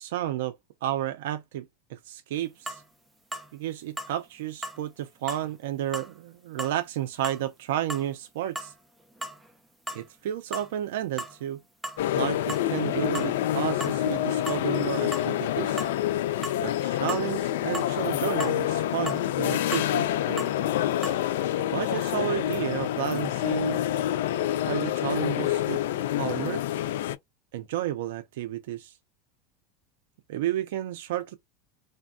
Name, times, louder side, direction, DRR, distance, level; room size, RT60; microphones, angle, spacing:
voice 1, 0.0-2.8 3.5-8.7 9.9-11.6 12.2-15.8 16.6-20.5 21.7-23.8 24.3-24.4 24.7-26.6 27.5-28.9 30.3-31.4, right 12 dB, 70° right, 0.4 m, -32 dB
sound 1, 2.7-2.8 3.3-3.5 4.0-4.2 4.6-4.8 5.3-5.5 5.9-6.1 6.6-6.8 7.2-7.4 7.9-8.1 8.6-8.7 9.1-9.5 9.9-10.1 10.5-10.7 11.2-11.4 11.8-12.0 12.5-12.7 13.1-13.3 13.8-14.0 14.5-14.6 15.1-15.3 15.8-16.0 16.4-16.6 17.1-17.3 17.7-17.9 18.4-18.6 19.1-19.2 19.7-19.9 20.4-20.6 21.0-21.2, right 1 dB, 5° right, 0.4 m, -36 dB
sound 2, 12.0-27.1, left 12 dB, 85° left, 0.3 m, -27 dB
3.3 x 2.1 x 2.4 m
supercardioid pair, 180°, 0 cm